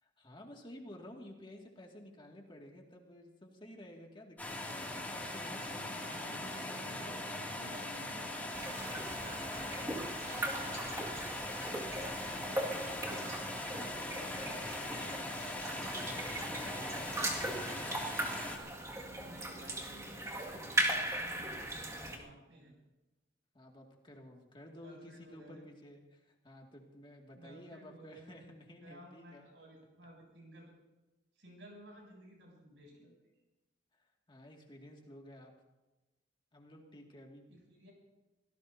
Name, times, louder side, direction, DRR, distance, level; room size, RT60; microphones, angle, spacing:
voice 1, 0.0-6.9 12.2-15.3 15.7-17.9 23.5-29.4 34.0-35.5 36.5-37.4, left 1 dB, 25° left, 1 dB, 2.2 m, -53 dB
sound 1, 4.4-18.6, left 1 dB, 10° left, 2.5 m, -41 dB
voice 2, 5.6-11.5 16.3-17.0 19.1-22.7 24.8-25.6 27.3-28.4 28.8-30.7 31.4-33.2 37.5-37.9, right 1 dB, 75° right, -1 dB, 7.7 m, -55 dB
sound 2, 8.5-22.2, right 1 dB, 15° right, 2.1 m, -39 dB
26.5 x 17.5 x 2.8 m, 1.1 s
head